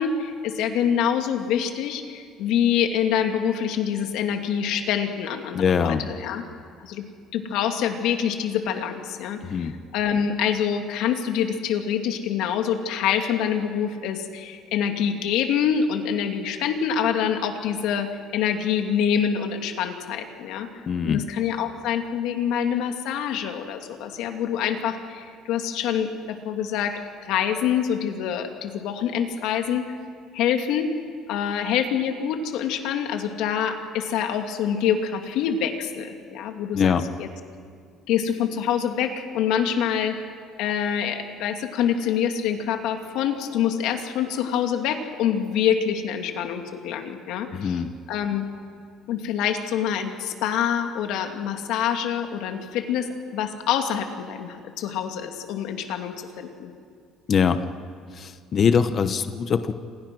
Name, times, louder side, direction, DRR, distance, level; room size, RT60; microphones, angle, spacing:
voice 1, 0.0-6.4 6.8-7.0 7.3-20.7 21.0-29.9 30.3-30.9 31.3-36.9 37.2-37.3 38.1-40.2 40.6-47.8 48.1-48.5 49.1-56.7, left 8 dB, 65° left, 5 dB, 2.6 m, -26 dB
voice 2, 5.5-6.0 9.4-9.7 20.9-21.2 36.7-37.0 47.5-47.9 57.3-57.6 58.1-59.7, left 6 dB, 30° left, 10 dB, 1.0 m, -22 dB
29.0 x 27.0 x 6.3 m, 2.2 s
cardioid pair, 175°, 0 cm